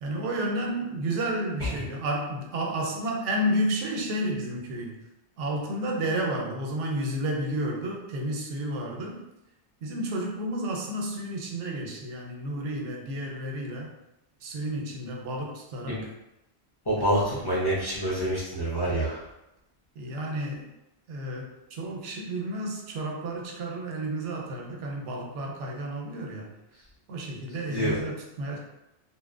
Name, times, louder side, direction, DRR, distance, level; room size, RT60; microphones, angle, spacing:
voice 1, 0.0-5.0 5.4-9.2 9.8-13.9 14.4-16.1 16.9-17.5 20.0-20.7 21.1-26.5 27.1-28.6, right 1 dB, 90° right, 0 dB, 0.9 m, -31 dB
voice 2, 16.9-19.2 27.7-28.0, right 1 dB, 30° left, -8 dB, 0.5 m, -27 dB
2.8 x 2.1 x 2.4 m, 0.90 s
omnidirectional pair, 1.2 m